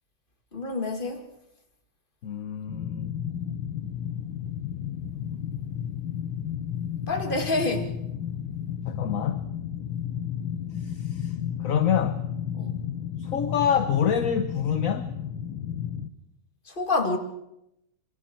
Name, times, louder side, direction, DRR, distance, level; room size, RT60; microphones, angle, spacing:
voice 1, 0.5-1.3 7.1-7.9 12.6-12.8 16.7-17.2, left 2 dB, 25° left, 2.3 m, -27 dB
voice 2, 2.2-3.2 8.9-9.5 10.9-11.3 11.6-12.2 13.2-15.1, left 8 dB, 50° left, 1.2 m, -26 dB
sound 1, 2.7-16.1, left 9 dB, 85° left, 1.9 m, -32 dB
26.5 x 26.0 x 4.5 m
omnidirectional pair, 2.2 m